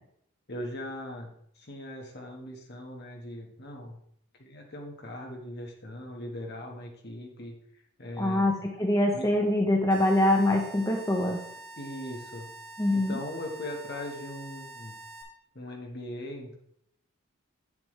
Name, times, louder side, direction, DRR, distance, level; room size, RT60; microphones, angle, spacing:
voice 1, 0.5-1.3 1.5-4.0 4.4-7.5 8.0-8.5 9.1-9.3 11.8-12.5 12.9-14.9 15.5-16.6, left 1 dB, 50° left, 1 dB, 1.5 m, -39 dB
voice 2, 8.2-11.4 12.8-13.2, left 1 dB, 15° left, 0 dB, 0.8 m, -24 dB
sound 1, 9.9-15.2, right 2 dB, 25° right, 2.0 m, -46 dB
8.5 x 7.3 x 3.2 m, 0.72 s
head